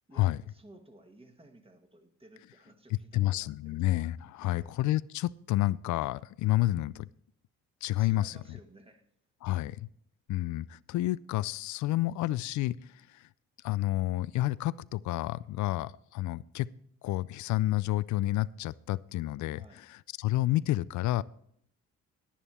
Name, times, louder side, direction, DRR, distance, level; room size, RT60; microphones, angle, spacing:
voice 1, 0.1-3.8 4.4-4.7 8.0-9.1 19.5-19.9, right 1 dB, 20° right, 1.6 m, -56 dB
voice 2, 3.1-7.1 7.8-8.3 9.4-9.9 10.3-13.3 13.6-16.7 17.0-21.2, left 16 dB, 70° left, 0.5 m, -30 dB
10.5 x 10.0 x 4.3 m
cardioid pair, 80°, 30 cm